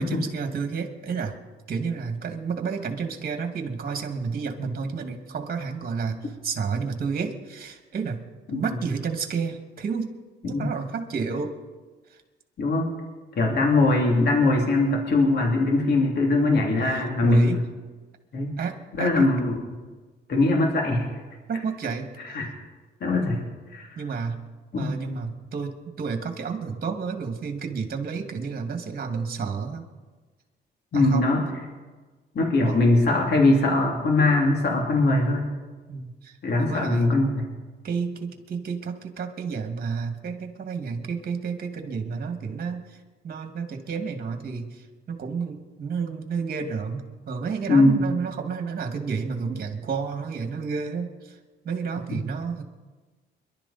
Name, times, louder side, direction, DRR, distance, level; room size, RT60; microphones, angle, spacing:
voice 1, 0.0-1.4 1.7-8.2 8.5-10.1 10.4-11.5 16.9-17.6 18.6-19.3 21.5-22.1 24.0-24.4 24.8-29.9 30.9-31.3 32.6-32.8 35.9-37.1 37.8-47.0 47.3-51.4 51.6-52.6, right 5 dB, 50° right, 6 dB, 2.3 m, -31 dB
voice 2, 12.6-12.9 13.4-17.6 18.3-18.5 19.0-19.6 20.3-21.1 22.2-22.5 23.0-23.4 23.7-23.8 24.7-24.9 30.9-31.4 32.3-35.5 36.4-37.4 47.7-48.1, left 2 dB, 55° left, 0 dB, 3.1 m, -21 dB
23.5 x 12.0 x 4.3 m, 1.3 s
cardioid pair, 90°, 20 cm